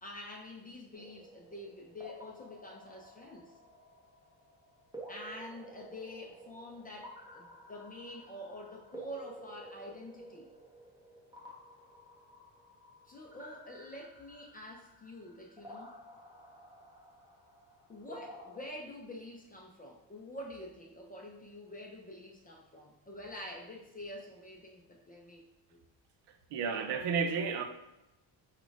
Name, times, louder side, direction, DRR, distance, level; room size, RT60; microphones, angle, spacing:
voice 1, 0.0-3.6 5.1-10.5 13.1-15.9 17.9-25.8 26.7-27.1, left 1 dB, 20° left, 0 dB, 0.4 m, -47 dB
sound 1, 0.9-18.7, right 1 dB, 10° right, 0.8 m, -52 dB
voice 2, 26.5-27.6, right 5 dB, 65° right, 6 dB, 0.6 m, -31 dB
4.1 x 2.3 x 4.6 m, 0.94 s
cardioid pair, 145°, 46 cm